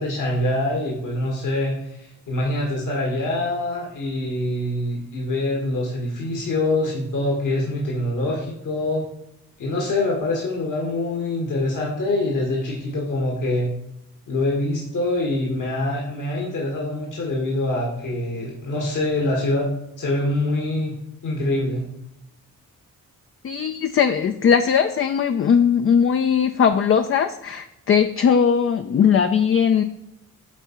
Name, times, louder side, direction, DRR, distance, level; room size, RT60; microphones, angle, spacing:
voice 1, 0.0-9.0 9.6-13.7 14.3-19.7 20.0-20.9 21.2-21.9, left 2 dB, 60° left, -2 dB, 1.5 m, -24 dB
voice 2, 23.4-29.8, left 7 dB, 40° left, 8 dB, 0.4 m, -19 dB
8.2 x 3.5 x 4.3 m, 0.84 s
cardioid pair, 55°, 34 cm